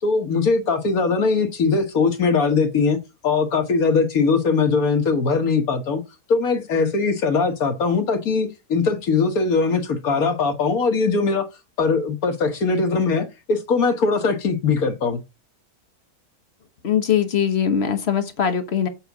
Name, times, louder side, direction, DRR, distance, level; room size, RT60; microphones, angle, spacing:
voice 1, 0.0-3.0 3.2-6.0 6.3-11.5 11.8-15.2, left 4 dB, 75° left, 1.7 m, -21 dB
voice 2, 16.8-18.9, left 8 dB, 50° left, 1.2 m, -21 dB
7.8 x 4.0 x 4.7 m
omnidirectional pair, 1.5 m